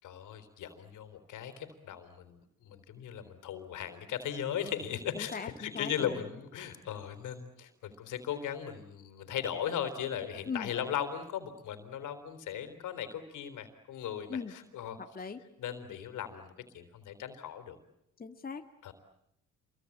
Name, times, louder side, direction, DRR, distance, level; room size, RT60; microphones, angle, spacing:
voice 1, 0.0-15.0 15.6-17.8 18.8-18.9, left 9 dB, 80° left, 10 dB, 3.9 m, -38 dB
voice 2, 5.1-6.2 10.5-10.7 14.3-14.5 15.0-15.4 18.2-18.6, left 5 dB, 30° left, 5 dB, 1.9 m, -39 dB
28.0 x 23.0 x 8.6 m, 0.78 s
cardioid pair, 90°, 30 cm